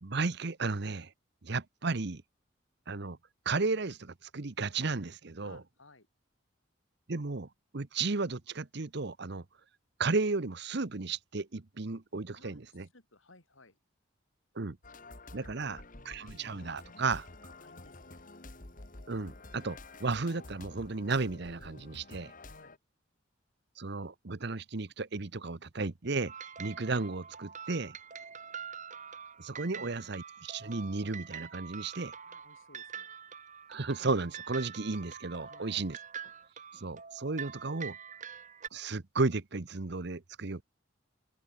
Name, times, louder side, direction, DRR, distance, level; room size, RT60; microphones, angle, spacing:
voice 1, 0.0-1.1 1.4-2.2 2.9-3.2 3.4-5.6 7.1-7.5 7.7-9.4 10.0-12.9 14.6-14.8 15.3-17.3 19.1-22.3 23.8-26.3 26.6-28.0 29.4-32.1 33.7-36.0 36.7-37.9 38.7-40.6, right 3 dB, 60° right, 1.0 m, -34 dB
voice 2, 5.4-6.1 12.3-13.8 15.3-15.6 16.1-16.2 17.5-18.2 22.5-22.8 29.5-29.9 32.0-33.1 35.4-35.7, left 2 dB, 85° left, 7.8 m, -60 dB
sound 1, 14.8-22.8, left 2 dB, 45° left, 2.3 m, -50 dB
sound 2, 26.3-38.7, right 7 dB, 40° right, 2.3 m, -45 dB
open air
head